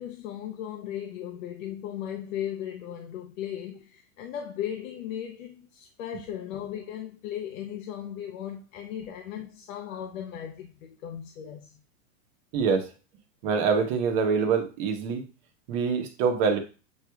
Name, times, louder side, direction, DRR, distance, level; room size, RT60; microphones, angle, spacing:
voice 1, 0.0-11.8, left 10 dB, 70° left, 0.7 m, -37 dB
voice 2, 12.5-12.9 13.4-15.2 15.7-16.6, right 5 dB, 40° right, 1.0 m, -25 dB
7.3 x 3.1 x 2.3 m
supercardioid pair, 150°, 42 cm